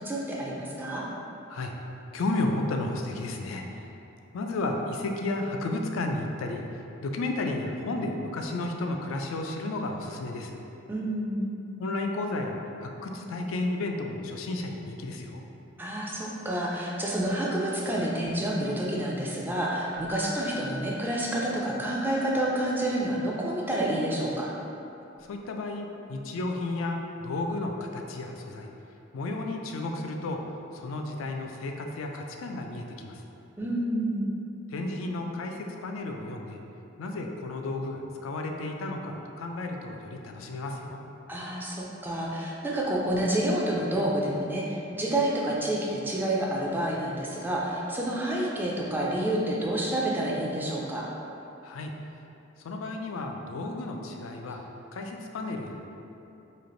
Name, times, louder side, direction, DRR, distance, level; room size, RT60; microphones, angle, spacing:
voice 1, 0.0-1.1 10.9-11.5 15.8-24.5 33.6-34.3 41.3-51.1, right 1 dB, 10° right, -4 dB, 0.4 m, -29 dB
voice 2, 2.1-3.9 4.3-6.6 7.0-10.6 11.8-15.4 25.3-28.7 29.1-30.4 30.7-33.2 34.7-36.6 37.0-41.0 51.6-51.9 52.6-54.6 54.9-55.8, left 2 dB, 85° left, 3 dB, 0.4 m, -33 dB
Keyboard (musical), 19.9-21.9 25.1-25.3, left 2 dB, 65° right, 0.6 m, -44 dB
3.2 x 2.5 x 3.8 m, 2.8 s
head